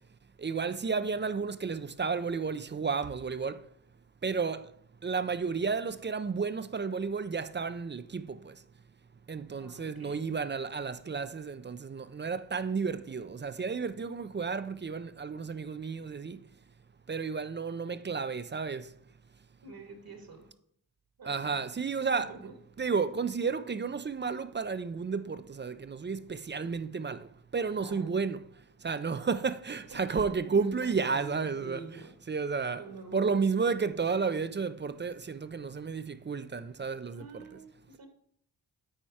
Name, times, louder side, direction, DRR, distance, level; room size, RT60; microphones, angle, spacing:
voice 1, 0.4-3.7 4.2-4.7 5.0-8.6 9.3-16.4 17.1-18.9 21.2-22.3 22.8-28.4 28.8-31.8 32.3-32.8 33.1-37.4, right 5 dB, 25° right, 0.4 m, -32 dB
voice 2, 9.5-10.3 19.6-20.5 21.2-21.6 22.1-22.6 27.6-28.2 29.9-32.1 32.6-33.4 37.0-38.1, right 3 dB, 60° right, 1.7 m, -47 dB
8.7 x 4.5 x 4.8 m
cardioid pair, 75°, 41 cm